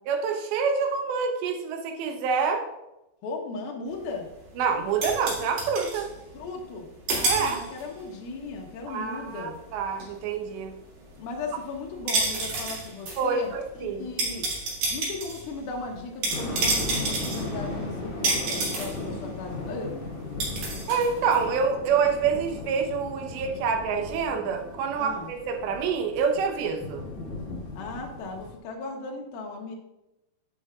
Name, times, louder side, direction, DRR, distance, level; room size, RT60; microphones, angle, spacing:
voice 1, 0.1-2.7 4.6-6.1 7.2-7.6 8.9-10.7 13.2-14.1 20.9-27.0, right 5 dB, 85° right, 3 dB, 3.2 m, -27 dB
voice 2, 3.2-4.3 6.3-9.6 11.2-14.5 14.9-20.1 24.9-25.3 27.7-29.8, left 3 dB, 70° left, 0 dB, 2.6 m, -37 dB
sound 1, 3.9-6.8 7.1-8.0 8.3-21.7, right 3 dB, 65° right, 4.0 m, -30 dB
sound 2, 16.3-28.6, left 2 dB, 50° left, 2.3 m, -37 dB
11.5 x 7.5 x 2.4 m, 0.92 s
omnidirectional pair, 4.9 m